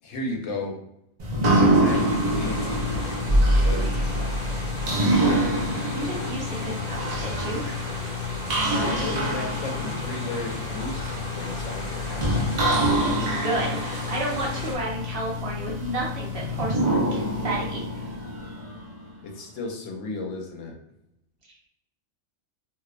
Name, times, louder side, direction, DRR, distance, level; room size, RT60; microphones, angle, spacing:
voice 1, 0.0-0.8 1.3-2.9 3.6-4.4 8.7-12.8 19.2-20.7, left 2 dB, 75° left, 1 dB, 0.9 m, -34 dB
sound 1, 1.2-19.0, equal, 80° right, 0.3 m, -25 dB
sound 2, 1.8-14.8, left 1 dB, 40° left, 0.7 m, -37 dB
voice 2, 5.9-7.8 12.8-18.0, right 1 dB, 55° right, -4 dB, 0.8 m, -31 dB
2.6 x 2.0 x 2.3 m, 0.78 s
omnidirectional pair, 1.4 m